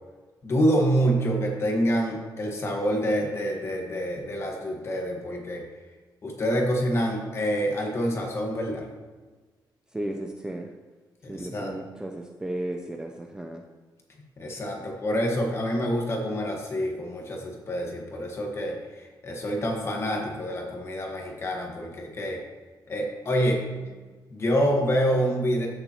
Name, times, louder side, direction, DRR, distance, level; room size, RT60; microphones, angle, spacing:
voice 1, 0.4-5.6 6.2-8.8 11.2-11.7 14.4-22.4 22.9-23.6 24.3-25.7, equal, 35° left, 1 dB, 1.5 m, -27 dB
voice 2, 9.9-10.7 11.3-13.6 14.9-15.0 24.0-24.1, right 1 dB, 10° right, 3 dB, 0.4 m, -34 dB
13.5 x 6.8 x 3.0 m, 1.4 s
wide cardioid pair, 165°, 8 cm